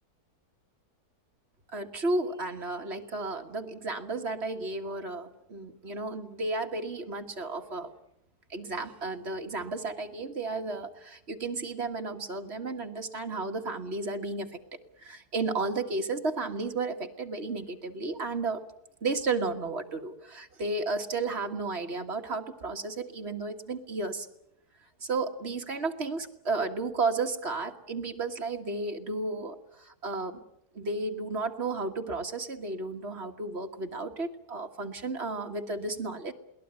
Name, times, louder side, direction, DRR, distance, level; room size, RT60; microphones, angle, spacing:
voice 1, 1.7-7.9 8.5-14.6 15.0-18.6 19.0-24.3 25.0-30.4 30.8-36.3, right 3 dB, 45° right, 5 dB, 1.8 m, -33 dB
22.0 x 18.0 x 9.4 m, 0.81 s
omnidirectional pair, 1.7 m